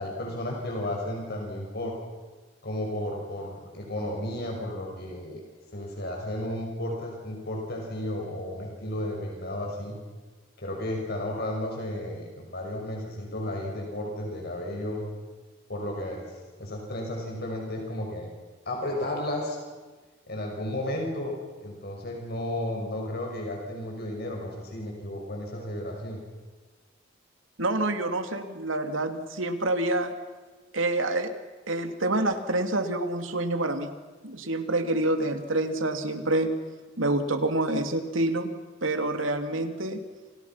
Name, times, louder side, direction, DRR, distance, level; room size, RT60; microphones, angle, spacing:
voice 1, 0.0-2.0 2.6-5.4 5.7-10.0 10.6-15.0 15.7-16.3 16.6-18.3 18.7-19.6 20.3-21.4 21.6-26.2, left 1 dB, 55° left, 0 dB, 5.9 m, -33 dB
voice 2, 27.6-30.1 30.7-31.3 31.7-33.9 34.2-36.5 37.0-38.5 38.8-40.0, right 2 dB, 85° right, 7 dB, 2.8 m, -27 dB
30.0 x 28.5 x 5.9 m, 1.3 s
head